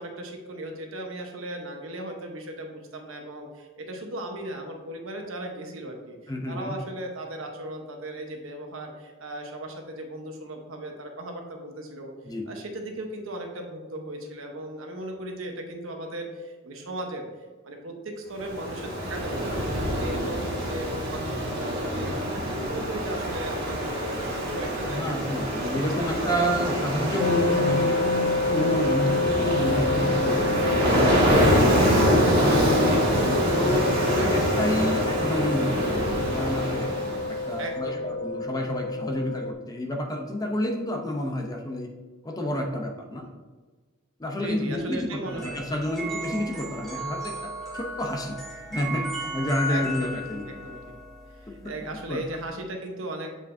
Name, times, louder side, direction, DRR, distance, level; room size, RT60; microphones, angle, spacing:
voice 1, 0.0-12.1 12.5-17.3 17.6-19.6 19.9-25.2 25.5-25.9 26.2-27.1 27.4-27.6 32.8-33.2 37.6-38.1 43.1-43.4 44.3-45.6 49.7-50.9 51.3-53.4, right 1 dB, 75° right, 3 dB, 1.0 m, -37 dB
voice 2, 6.3-6.8 12.2-12.5 24.9-28.0 28.5-30.5 30.8-31.8 32.4-32.9 33.2-36.9 37.3-41.9 42.2-43.3 44.2-47.5 47.7-48.4 48.7-50.4 52.1-52.2, equal, 20° left, 2 dB, 0.6 m, -29 dB
Ocean, 18.4-37.5, equal, 50° right, 1.9 m, -25 dB
sound 1, 27.2-39.5, left 3 dB, 50° left, 0.3 m, -28 dB
sound 2, 45.2-52.5, equal, ahead, 1.8 m, -36 dB
7.6 x 4.9 x 2.6 m, 1.3 s
head